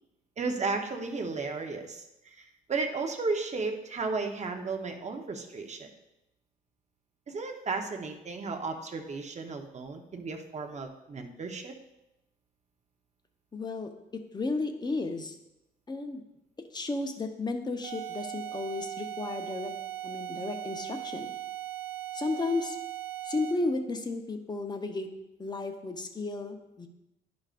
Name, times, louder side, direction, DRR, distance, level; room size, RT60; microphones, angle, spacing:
voice 1, 0.4-5.9 7.3-11.7, right 4 dB, 35° right, 4 dB, 0.9 m, -34 dB
voice 2, 13.5-15.4 15.9-16.2 16.7-19.7 20.0-21.3 22.1-22.8 23.3-25.1 25.4-26.9, left 3 dB, 20° left, 5 dB, 0.8 m, -33 dB
sound 1, 17.8-23.7, right 14 dB, 80° right, 1.4 m, -39 dB
11.0 x 5.2 x 2.5 m, 0.91 s
cardioid pair, 90°, 20 cm